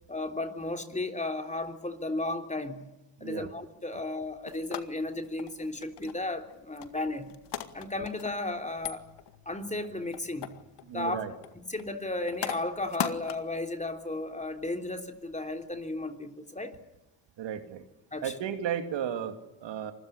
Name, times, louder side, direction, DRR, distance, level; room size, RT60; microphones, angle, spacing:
voice 1, 0.1-2.8 3.2-7.3 7.7-9.1 9.4-10.5 10.9-11.2 11.5-16.8 18.1-18.3, left 2 dB, 15° left, 5 dB, 3.3 m, -34 dB
voice 2, 3.2-3.5 10.9-11.3 17.4-17.8 18.2-19.9, right 9 dB, 65° right, 7 dB, 2.7 m, -34 dB
sound 1, 4.2-15.9, left 10 dB, 60° left, 2.0 m, -41 dB
26.0 x 21.5 x 10.0 m, 0.92 s
supercardioid pair, 70°, 47 cm